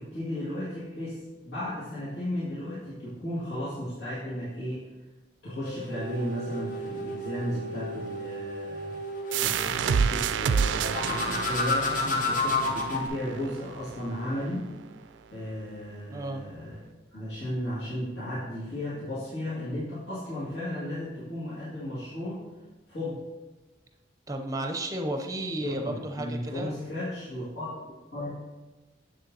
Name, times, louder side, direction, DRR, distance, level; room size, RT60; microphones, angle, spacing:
voice 1, 0.0-4.8 5.4-8.9 9.2-14.7 15.3-16.8 17.1-22.5 22.9-23.2 25.6-28.3, left 1 dB, 75° left, -11 dB, 2.2 m, -34 dB
sound 1, 5.7-9.4 10.8-13.1, left 2 dB, 45° left, 0.9 m, -31 dB
sound 2, 9.3-14.7, right 6 dB, 75° right, 0.3 m, -29 dB
voice 2, 16.1-16.5 24.3-26.7, right 1 dB, 20° right, 4 dB, 0.6 m, -33 dB
7.6 x 6.6 x 2.8 m, 1.1 s
head